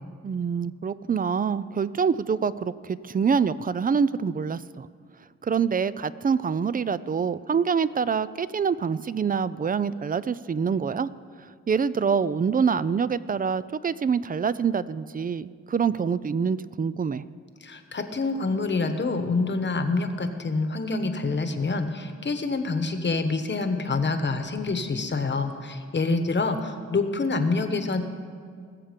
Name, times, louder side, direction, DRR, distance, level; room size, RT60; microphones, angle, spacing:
voice 1, 0.2-4.9 5.4-11.1 11.7-17.2, right 6 dB, 30° right, 17 dB, 0.4 m, -25 dB
voice 2, 17.6-28.0, left 3 dB, 40° left, 8 dB, 1.1 m, -26 dB
20.5 x 7.3 x 5.2 m, 2.1 s
cardioid pair, 80°, 29 cm